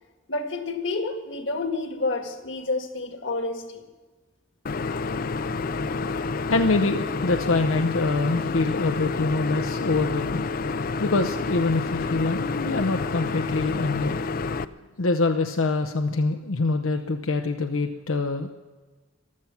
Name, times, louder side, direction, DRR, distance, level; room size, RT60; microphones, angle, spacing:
voice 1, 0.3-3.9, left 3 dB, 65° left, 6 dB, 1.6 m, -29 dB
sound 1, 4.7-14.7, left 4 dB, 45° left, 0.4 m, -29 dB
voice 2, 6.5-10.7 11.0-14.2 15.0-18.5, left 3 dB, 90° left, 5 dB, 0.8 m, -25 dB
15.0 x 12.0 x 5.8 m, 1.3 s
head